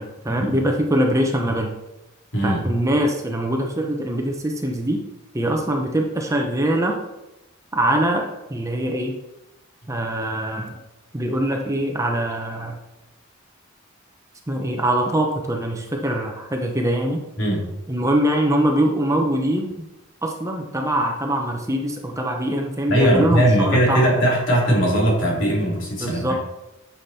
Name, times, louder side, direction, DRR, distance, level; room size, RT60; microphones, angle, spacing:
voice 1, 0.0-1.7 2.4-5.0 5.3-6.9 7.7-9.2 9.9-10.7 11.1-12.8 14.5-17.2 17.9-19.7 20.2-24.3 26.0-26.3, right 1 dB, 15° right, 2 dB, 1.0 m, -23 dB
voice 2, 2.3-2.6 17.4-17.7 22.9-26.3, right 1 dB, 60° left, -3 dB, 3.5 m, -19 dB
10.5 x 7.3 x 4.4 m, 0.96 s
head